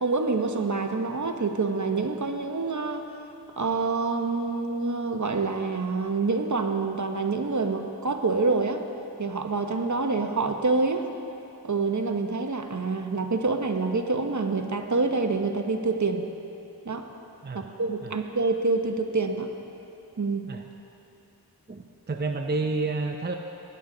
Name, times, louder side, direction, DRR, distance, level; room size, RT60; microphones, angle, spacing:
voice 1, 0.0-3.1 3.6-8.8 9.2-11.1 11.6-16.3 16.8-17.1 17.5-19.5 20.2-20.5, right 3 dB, 50° right, 5 dB, 1.0 m, -26 dB
voice 2, 21.7-23.4, right 3 dB, 25° right, 4 dB, 0.6 m, -30 dB
19.0 x 9.9 x 3.9 m, 2.8 s
wide cardioid pair, 50°, 39 cm